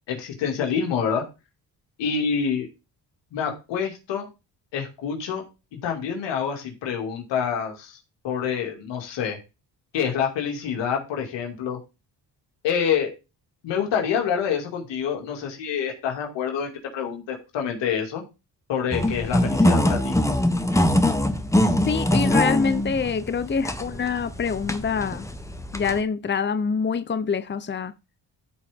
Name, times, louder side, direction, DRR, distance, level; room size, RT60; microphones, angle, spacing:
voice 1, 0.1-1.2 2.0-2.7 3.3-4.3 4.7-5.4 5.7-8.0 8.2-9.4 9.9-11.8 12.6-13.1 13.6-18.2 18.7-20.2, left 7 dB, 90° left, 2.5 m, -27 dB
sound 1, 18.9-26.0, left 1 dB, 5° left, 1.2 m, -23 dB
voice 2, 21.8-25.3 25.7-27.9, left 5 dB, 25° left, 0.8 m, -25 dB
14.0 x 4.7 x 3.6 m
cardioid pair, 70°, 42 cm